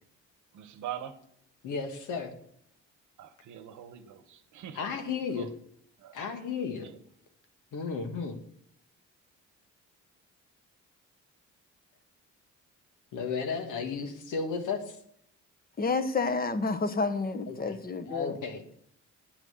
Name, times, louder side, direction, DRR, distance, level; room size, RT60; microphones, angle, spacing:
voice 1, 0.5-1.2 3.2-4.8 5.3-5.5 6.0-6.2 6.8-7.0, right 10 dB, 75° right, 11 dB, 1.1 m, -42 dB
voice 2, 1.6-2.3 4.7-5.5 6.1-6.9 7.7-8.3 13.1-15.0 17.5-17.8 18.0-18.6, left 5 dB, 85° left, 7 dB, 1.5 m, -34 dB
voice 3, 15.8-18.4, left 4 dB, 30° left, 11 dB, 1.0 m, -29 dB
9.0 x 6.0 x 7.9 m, 0.69 s
cardioid pair, 90°, 30 cm